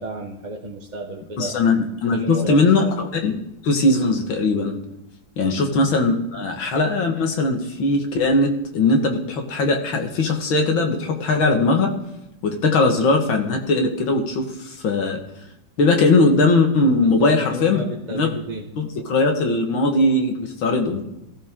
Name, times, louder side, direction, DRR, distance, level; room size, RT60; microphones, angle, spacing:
voice 1, 0.0-1.6 2.1-2.9 5.5-5.7 17.0-18.7, right 2 dB, 25° right, -2 dB, 1.2 m, -32 dB
voice 2, 1.4-3.4 3.6-4.8 5.4-11.9 12.4-15.2 15.8-17.8 18.1-18.3 18.8-21.0, left 2 dB, 90° left, 4 dB, 2.4 m, -20 dB
18.0 x 14.5 x 3.7 m, 0.86 s
omnidirectional pair, 2.1 m